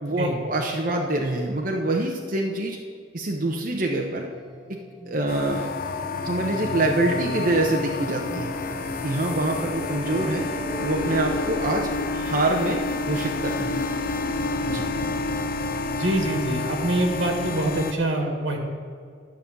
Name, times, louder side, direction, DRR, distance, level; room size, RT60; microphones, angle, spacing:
voice 1, 0.0-2.8 3.1-4.3 4.7-4.8 5.0-5.7 6.2-8.5 9.0-10.5 10.8-12.8 13.1-13.8 14.7-14.8, right 2 dB, 45° right, 1 dB, 0.8 m, -25 dB
sound 1, 4.3-15.7, equal, 5° right, 1.1 m, -37 dB
sound 2, 5.3-17.9, left 3 dB, 50° left, 0.5 m, -29 dB
voice 2, 15.9-18.6, right 1 dB, 90° right, 2 dB, 1.6 m, -25 dB
11.5 x 5.3 x 7.2 m, 2.2 s
head